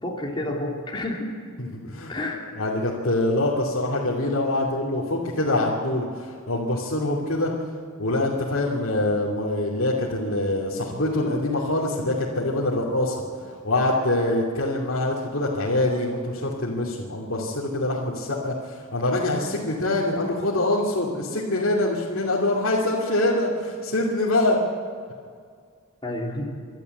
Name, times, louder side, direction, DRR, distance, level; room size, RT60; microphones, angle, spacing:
voice 1, 0.0-1.3 2.1-2.4 26.0-26.4, left 1 dB, 25° left, -2 dB, 3.2 m, -29 dB
voice 2, 1.6-2.1 2.6-7.5 8.0-13.2 13.5-24.6, left 1 dB, 70° left, -6 dB, 2.8 m, -24 dB
27.0 x 12.5 x 8.0 m, 2.1 s
head